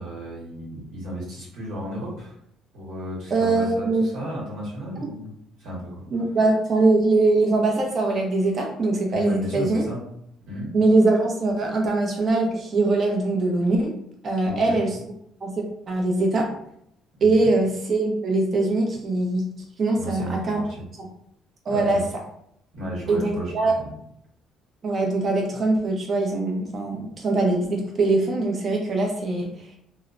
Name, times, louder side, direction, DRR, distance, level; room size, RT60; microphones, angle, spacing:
voice 1, 0.0-2.3 2.7-6.0 9.1-10.0 10.5-10.7 14.5-14.8 17.2-17.5 20.0-20.8 21.7-22.0 22.7-24.0, equal, 70° right, -4 dB, 1.2 m, -34 dB
voice 2, 3.3-4.1 6.1-9.8 10.7-13.9 14.2-15.0 15.4-16.5 17.2-19.4 19.8-20.6 21.0-21.1 21.7-22.0 23.1-23.8 24.8-29.5, right 2 dB, 35° right, 1 dB, 0.6 m, -22 dB
2.8 x 2.0 x 2.5 m, 0.73 s
cardioid pair, 125°, 0 cm